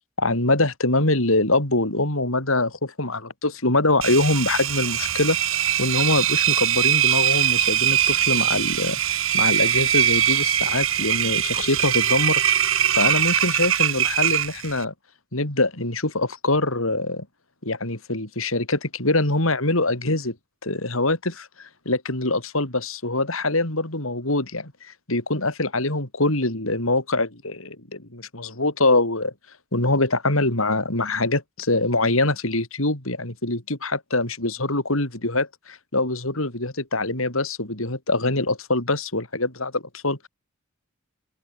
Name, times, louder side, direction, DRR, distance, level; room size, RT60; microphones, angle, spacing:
voice 1, 0.2-5.4 5.8-9.0 9.3-12.4 13.0-14.9 15.3-17.2 17.6-20.3 20.6-29.3 29.7-40.3, left 2 dB, 70° left, 5.3 m, -24 dB
Engine, 4.0-14.8, right 10 dB, 70° right, 4.7 m, -22 dB
open air
head